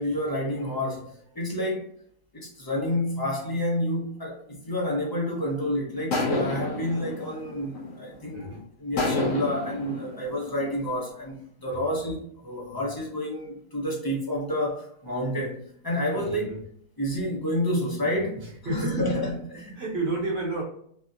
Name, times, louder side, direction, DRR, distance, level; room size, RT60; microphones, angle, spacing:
voice 1, 0.0-1.9 2.3-16.5 17.0-18.4 18.7-19.8, left 1 dB, 30° left, 0.4 m, -29 dB
sound 1, 5.2-5.5 6.1-8.3 9.0-10.8, left 2 dB, 70° left, 1.1 m, -30 dB
voice 2, 8.3-8.6 11.7-11.8 16.1-16.6 18.4-19.1 19.7-20.6, right 2 dB, 50° right, 1.1 m, -31 dB
3.4 x 2.4 x 2.7 m
omnidirectional pair, 1.5 m